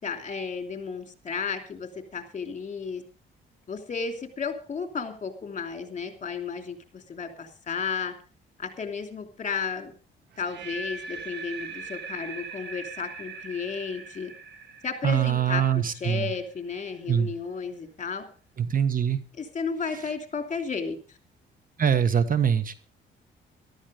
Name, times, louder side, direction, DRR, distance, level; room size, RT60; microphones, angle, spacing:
voice 1, 0.0-3.0 3.7-8.1 8.6-9.9 10.4-14.3 14.8-18.3 19.3-21.0, left 5 dB, 40° left, 6 dB, 3.0 m, -33 dB
sound 1, 10.3-16.4, right 4 dB, 60° right, 1.8 m, -40 dB
voice 2, 15.0-16.3 17.1-17.3 18.6-19.2 21.8-22.7, right 8 dB, 45° right, 12 dB, 1.4 m, -23 dB
13.5 x 12.5 x 5.1 m, 0.38 s
cardioid pair, 90°, 20 cm